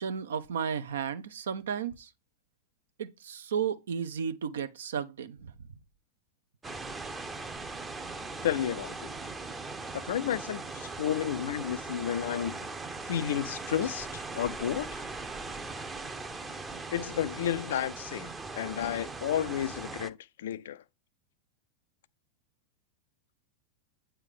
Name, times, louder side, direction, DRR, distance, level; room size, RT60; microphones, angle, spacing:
voice 1, 0.0-2.1 3.0-5.5, right 7 dB, 65° right, 0.6 m, -33 dB
sound 1, 6.6-20.1, right 3 dB, 15° right, 0.7 m, -40 dB
voice 2, 8.4-9.1 9.9-12.6 13.0-15.0 16.9-20.8, left 10 dB, 60° left, 0.3 m, -32 dB
8.8 x 3.3 x 3.7 m
figure-of-eight pair, 90°, 0 cm